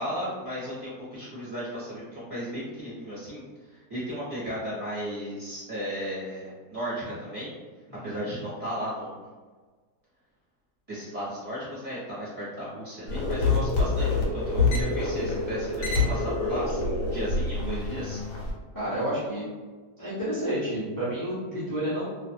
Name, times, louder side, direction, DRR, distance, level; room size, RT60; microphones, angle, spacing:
voice 1, 0.0-7.5 8.0-9.2 10.9-18.2, equal, 25° right, -11 dB, 1.0 m, -35 dB
sound 1, 13.1-18.5, left 3 dB, 80° left, 1.3 m, -26 dB
voice 2, 18.7-19.5 20.0-22.0, right 1 dB, 25° left, -12 dB, 0.5 m, -30 dB
2.5 x 2.4 x 2.6 m, 1.4 s
omnidirectional pair, 1.7 m